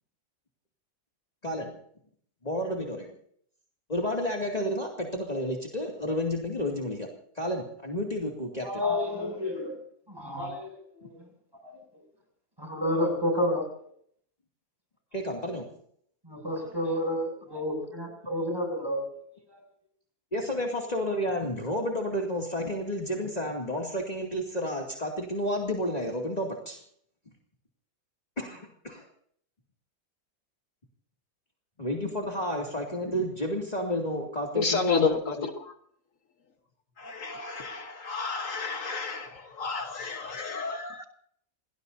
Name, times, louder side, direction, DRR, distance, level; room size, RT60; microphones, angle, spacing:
voice 1, 2.4-3.1 3.9-7.1 7.4-8.8 15.1-15.6 20.3-26.8 28.4-29.1 31.8-35.0 35.4-35.5, equal, 30° left, 2.5 m, -31 dB
voice 2, 8.6-9.8 10.1-11.3 11.6-11.7 12.6-13.7 16.2-19.0 19.5-19.6, left 1 dB, 15° right, 7.2 m, -30 dB
voice 3, 34.6-35.7 37.0-41.0, left 4 dB, 65° left, 1.7 m, -31 dB
28.0 x 19.0 x 2.7 m
omnidirectional pair, 1.5 m